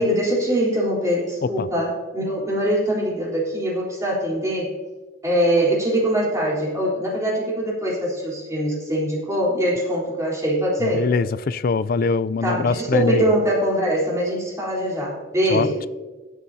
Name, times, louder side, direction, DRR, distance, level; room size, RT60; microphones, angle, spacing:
voice 1, 0.0-4.7 5.2-11.0 12.4-15.8, right 1 dB, 15° right, 3.7 m, -23 dB
voice 2, 10.8-13.3 15.5-15.9, left 4 dB, 50° left, 0.4 m, -23 dB
19.5 x 8.5 x 2.8 m
head